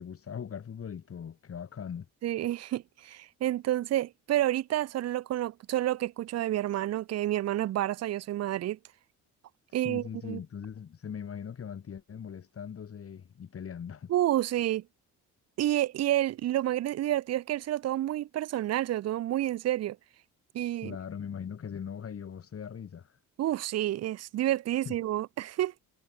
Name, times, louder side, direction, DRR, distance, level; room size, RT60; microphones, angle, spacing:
voice 1, 0.0-2.1 9.8-14.1 20.8-23.1 24.8-25.0, left 7 dB, 40° left, 4.6 m, -40 dB
voice 2, 2.2-8.8 9.7-10.4 14.1-14.8 15.6-20.0 20.5-21.0 23.4-25.7, right 13 dB, 50° right, 0.6 m, -29 dB
cardioid pair, 120°, 33 cm